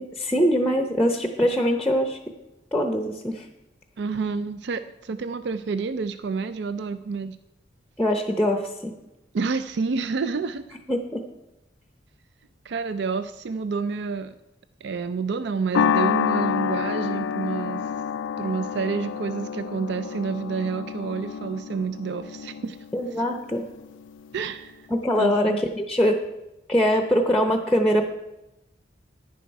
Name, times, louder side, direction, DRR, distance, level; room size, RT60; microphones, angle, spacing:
voice 1, 0.0-2.2 2.7-3.5 8.0-8.9 10.9-11.2 22.9-23.6 24.9-26.2 26.7-28.0, equal, 5° left, 4 dB, 0.7 m, -23 dB
voice 2, 4.0-7.4 9.3-10.8 12.6-14.3 14.8-17.8 18.4-22.8 24.3-24.8 25.2-25.6, right 5 dB, 65° right, 11 dB, 0.4 m, -29 dB
sound 1, 15.7-24.3, left 7 dB, 85° left, 0.3 m, -28 dB
10.5 x 10.5 x 4.6 m, 0.96 s
head